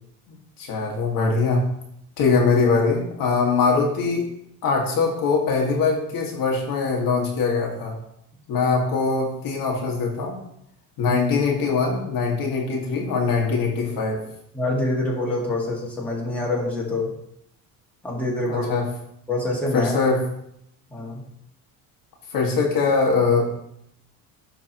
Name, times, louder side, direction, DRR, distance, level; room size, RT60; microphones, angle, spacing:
voice 1, 0.3-1.6 2.2-4.3 4.6-7.9 8.5-10.3 11.0-14.2 18.5-18.9 19.7-20.2 22.3-23.5, left 4 dB, 60° left, -2 dB, 1.7 m, -22 dB
voice 2, 14.5-17.1 18.0-18.7 19.3-19.9 20.9-21.2, left 2 dB, 5° left, -4 dB, 1.9 m, -26 dB
11.5 x 3.9 x 2.9 m, 0.75 s
cardioid pair, 120°, 38 cm